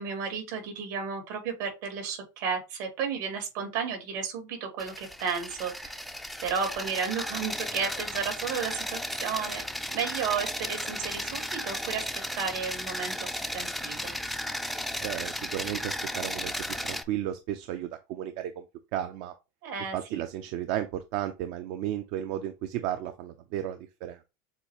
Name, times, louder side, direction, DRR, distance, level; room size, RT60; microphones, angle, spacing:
voice 1, 0.0-6.0 6.4-9.6 9.9-12.1 12.3-14.1 19.6-20.2, right 6 dB, 80° right, 2.3 m, -33 dB
sound 1, 4.8-17.0, equal, ahead, 0.3 m, -35 dB
voice 2, 15.0-18.6 18.9-19.3 19.9-24.2, right 11 dB, 60° right, 0.5 m, -34 dB
6.8 x 2.3 x 2.9 m
supercardioid pair, 140°, 10 cm